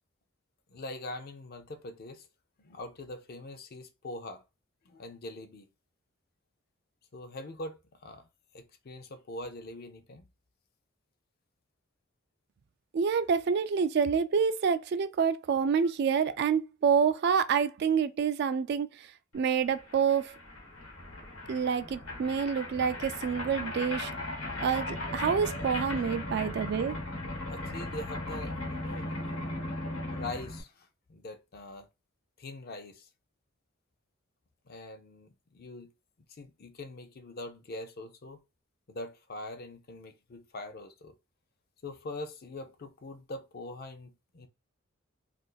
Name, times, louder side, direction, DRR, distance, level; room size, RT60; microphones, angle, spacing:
voice 1, 0.7-2.3 2.6-4.4 4.8-5.7 7.1-8.3 8.5-10.3 15.8-15.9 27.4-29.1 30.1-31.9 32.4-33.1 34.7-35.9 36.3-38.4 38.9-41.2 41.8-44.5, left 2 dB, 50° left, 0.5 m, -43 dB
voice 2, 12.9-19.1 19.3-20.3 21.5-24.1 24.6-27.0, right 6 dB, 55° right, 0.3 m, -27 dB
sound 1, 19.5-19.6 19.7-30.6, left 1 dB, 80° left, 1.0 m, -37 dB
2.5 x 2.4 x 3.8 m
head